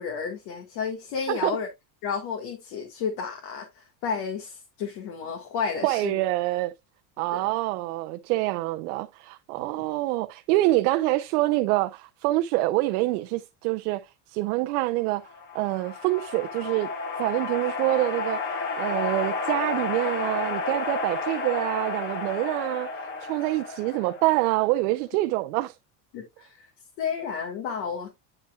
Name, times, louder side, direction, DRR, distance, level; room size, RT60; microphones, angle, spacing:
voice 1, 0.0-1.7 2.0-6.2 7.3-7.5 9.8-9.9 26.1-26.7 27.0-28.1, left 6 dB, 55° left, 1.7 m, -32 dB
voice 2, 5.8-6.7 7.2-14.0 14.3-15.2 15.5-16.9 17.2-18.4 18.8-22.9 23.2-25.8, right 18 dB, 85° right, 0.7 m, -26 dB
sound 1, 15.1-24.7, left 4 dB, 25° left, 1.4 m, -31 dB
9.4 x 5.5 x 2.3 m
cardioid pair, 160°, 44 cm